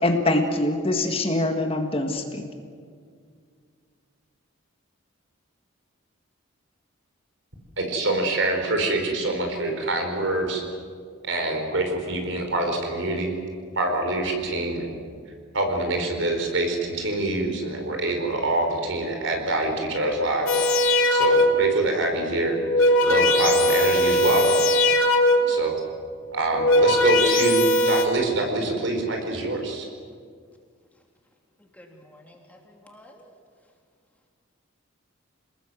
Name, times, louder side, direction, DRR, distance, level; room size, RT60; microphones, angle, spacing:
voice 1, 0.0-2.4, left 2 dB, 30° left, 4 dB, 1.8 m, -24 dB
voice 2, 7.8-10.6 11.2-13.4 13.8-14.9 15.5-20.6 21.1-24.6 25.5-25.7 26.3-29.9, right 2 dB, 65° right, 3 dB, 4.9 m, -25 dB
sound 1, 20.5-21.8 22.5-25.6 26.4-28.0, left 1 dB, 90° left, 2.6 m, -20 dB
voice 3, 31.8-33.2, left 1 dB, 5° left, 1 dB, 3.0 m, -50 dB
28.0 x 20.0 x 7.8 m, 2.1 s
head